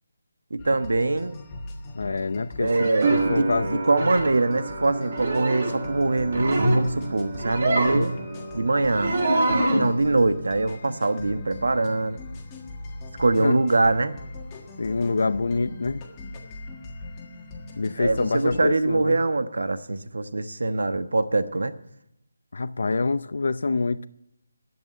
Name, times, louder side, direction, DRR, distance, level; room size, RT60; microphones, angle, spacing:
voice 1, 0.5-1.4 2.6-8.1 8.5-9.2 9.5-12.2 13.2-14.2 18.0-21.7, right 2 dB, 80° right, 11 dB, 1.2 m, -23 dB
sound 1, 0.6-18.6, left 2 dB, 15° left, 1.5 m, -40 dB
voice 2, 1.9-2.7 3.1-3.8 13.4-13.6 14.8-16.0 17.8-19.2 22.5-24.1, left 3 dB, 60° left, 16 dB, 0.5 m, -26 dB
sound 2, 2.6-3.3 4.0-4.3 5.1-5.8 6.2-6.8 7.3-8.1 8.8-9.9, right 1 dB, 50° right, 2.8 m, -24 dB
sound 3, 3.0-9.8 10.1-11.0, right 4 dB, 30° right, 1.4 m, -32 dB
11.0 x 8.6 x 9.3 m, 0.81 s
hypercardioid pair, 175°, 0 cm